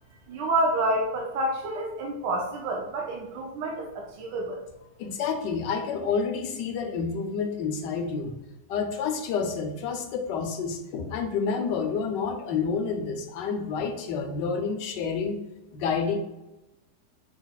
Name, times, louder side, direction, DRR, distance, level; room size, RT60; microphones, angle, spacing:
voice 1, 0.3-4.6, right 1 dB, 80° right, 0 dB, 1.3 m, -28 dB
voice 2, 5.0-8.4 8.7-15.4 15.7-16.2, left 5 dB, 85° left, 6 dB, 1.3 m, -29 dB
5.5 x 4.0 x 2.3 m, 0.97 s
omnidirectional pair, 1.9 m